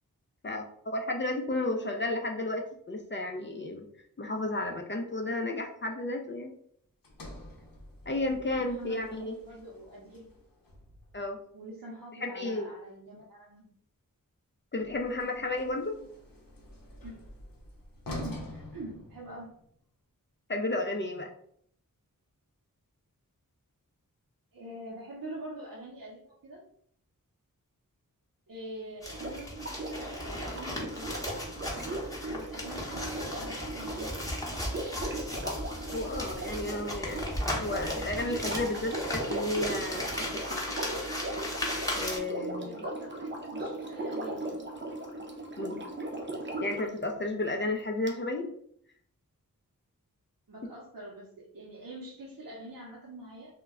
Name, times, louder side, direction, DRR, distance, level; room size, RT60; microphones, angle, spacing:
voice 1, 0.4-3.9 4.2-6.5 8.1-9.3 11.1-11.4 12.2-12.7 14.7-16.1 20.5-21.3 35.9-40.8 42.0-42.8 45.6-45.8 46.6-48.5, left 2 dB, 35° left, 2 dB, 0.4 m, -33 dB
Sliding door, 7.0-11.3 14.8-19.7, left 1 dB, 75° left, 0.7 m, -46 dB
voice 2, 8.3-10.3 11.5-13.7 17.0-17.2 18.2-19.5 24.5-26.6 28.5-31.1 32.2-34.2 42.6-44.7 50.5-53.5, right 1 dB, 70° right, -4 dB, 0.7 m, -45 dB
sound 1, 29.0-42.2, left 1 dB, 10° left, 0.8 m, -36 dB
Sink (filling or washing), 29.1-46.9 48.1-48.2, right 1 dB, 35° right, 0.6 m, -38 dB
2.1 x 2.1 x 3.5 m, 0.65 s
wide cardioid pair, 60°, 34 cm